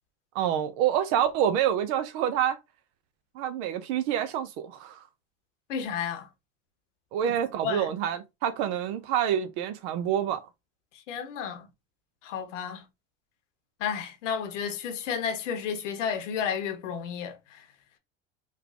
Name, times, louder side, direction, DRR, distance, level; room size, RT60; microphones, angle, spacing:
voice 1, 0.3-2.6 3.4-5.0 7.1-10.4, right 10 dB, 70° right, 0.6 m, -27 dB
voice 2, 5.7-6.3 7.6-7.9 10.9-11.7 12.2-12.8 13.8-17.6, left 7 dB, 85° left, 0.9 m, -32 dB
3.2 x 2.3 x 3.6 m
hypercardioid pair, 85°, 35 cm